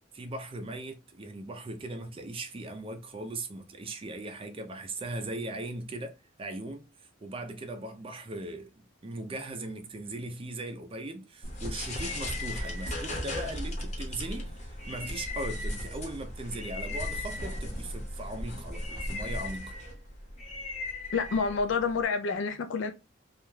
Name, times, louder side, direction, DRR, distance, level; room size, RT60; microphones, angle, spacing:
voice 1, 0.1-8.7 9.0-19.7, right 2 dB, 30° right, 0.4 m, -39 dB
sound 1, 11.4-22.0, left 1 dB, 35° left, 0.8 m, -36 dB
voice 2, 21.1-22.9, left 5 dB, 70° left, 0.3 m, -28 dB
2.4 x 2.2 x 3.1 m
head